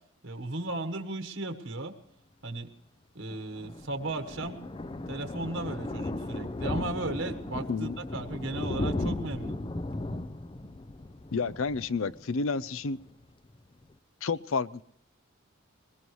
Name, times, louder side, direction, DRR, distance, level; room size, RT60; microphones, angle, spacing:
voice 1, 0.2-1.9 2.4-2.7 3.1-4.6 5.1-9.6, right 2 dB, 60° right, 7 dB, 1.3 m, -35 dB
Thunder, 3.3-12.7 13.0-13.2 13.5-13.6 13.8-13.9, left 2 dB, 25° left, 0.5 m, -36 dB
voice 2, 11.3-13.0 14.2-14.8, left 4 dB, 65° left, 18 dB, 0.6 m, -30 dB
22.0 x 20.5 x 3.2 m, 0.71 s
head